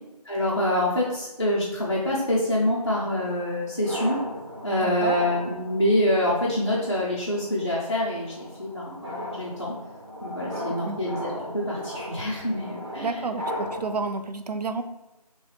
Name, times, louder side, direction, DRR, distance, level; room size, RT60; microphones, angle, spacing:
voice 1, 0.3-4.2 4.6-9.7 10.2-13.1, left 1 dB, 40° left, -6 dB, 0.5 m, -26 dB
sound 1, 2.8-14.0, equal, 40° right, 1.0 m, -37 dB
voice 2, 4.8-5.2 10.8-11.0 13.0-14.8, right 3 dB, 75° right, 7 dB, 0.4 m, -30 dB
3.0 x 3.0 x 3.1 m, 1.0 s
figure-of-eight pair, 180°, 21 cm